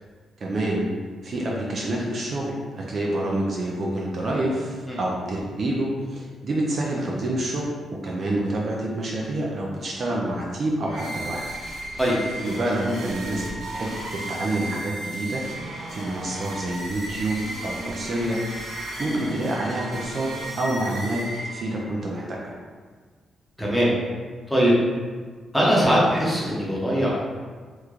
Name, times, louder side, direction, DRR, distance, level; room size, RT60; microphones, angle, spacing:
voice 1, 0.4-0.9 1.2-7.6 7.9-11.4 12.4-18.4 19.0-20.3 20.6-21.2 21.5-22.6, right 1 dB, 45° right, -3 dB, 0.4 m, -27 dB
sound 1, 10.8-21.9, right 1 dB, 80° right, 1.2 m, -35 dB
voice 2, 23.6-23.9 24.5-24.8 25.5-27.1, equal, 5° left, -6 dB, 0.8 m, -20 dB
3.0 x 2.1 x 3.7 m, 1.5 s
cardioid pair, 125°, 0 cm